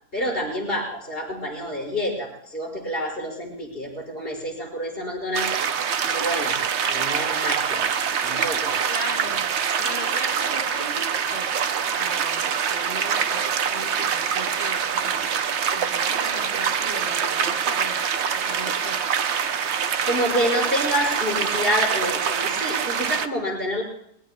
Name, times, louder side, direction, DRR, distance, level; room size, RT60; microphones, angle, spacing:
voice 1, 0.1-5.6 6.1-6.5 6.9-7.9 8.2-8.7 20.0-23.8, equal, 35° left, -2 dB, 6.1 m, -28 dB
sound 1, 5.3-23.3, right 7 dB, 55° right, 0.9 m, -25 dB
voice 2, 8.9-9.5 9.8-11.5 11.9-15.3 15.7-19.0, equal, 35° right, 0 dB, 5.2 m, -37 dB
27.5 x 21.0 x 2.3 m, 0.70 s
omnidirectional pair, 1.6 m